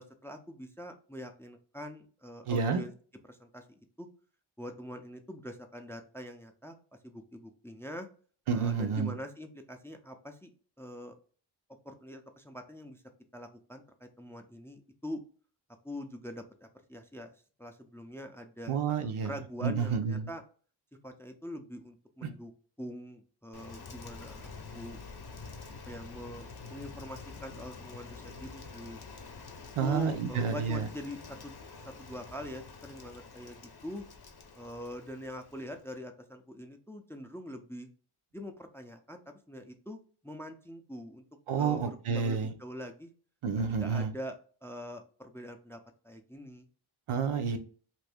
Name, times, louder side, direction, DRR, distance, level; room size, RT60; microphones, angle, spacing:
voice 1, 0.0-2.9 3.3-4.1 4.6-6.8 7.0-8.1 8.5-10.5 10.8-11.2 11.8-13.0 13.3-15.2 15.8-17.3 17.6-20.4 21.0-22.5 22.8-25.0 25.9-29.0 29.8-31.6 31.8-33.6 33.8-34.0 34.6-37.9 38.3-40.0 40.2-41.2 41.6-43.1 43.8-46.7, equal, 5° left, 5 dB, 0.4 m, -44 dB
voice 2, 2.5-2.8 8.5-9.1 18.7-19.3 19.6-20.3 22.2-22.3 29.8-30.9 41.5-42.5 43.4-44.1 47.1-47.6, right 6 dB, 80° right, 6 dB, 0.7 m, -29 dB
Rain, 23.5-35.9, left 4 dB, 50° left, 0.7 m, -47 dB
2.6 x 2.6 x 3.4 m, 0.41 s
wide cardioid pair, 65°, 49 cm